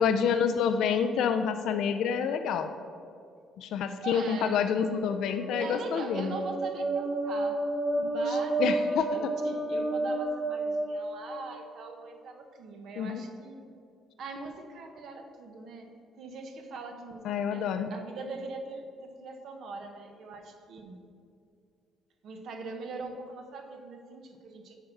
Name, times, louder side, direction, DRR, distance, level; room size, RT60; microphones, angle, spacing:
voice 1, 0.0-2.7 3.6-6.3 8.6-9.1 13.0-13.2 17.2-17.9, left 7 dB, 75° left, 8 dB, 0.4 m, -28 dB
voice 2, 4.0-4.7 5.6-7.7 8.0-13.6 14.2-21.0 22.2-24.8, right 3 dB, 60° right, 4 dB, 1.0 m, -42 dB
sound 1, 4.9-11.7, right 2 dB, 40° right, 2.2 m, -31 dB
8.1 x 4.6 x 6.5 m, 2.3 s
cardioid pair, 120°, 0 cm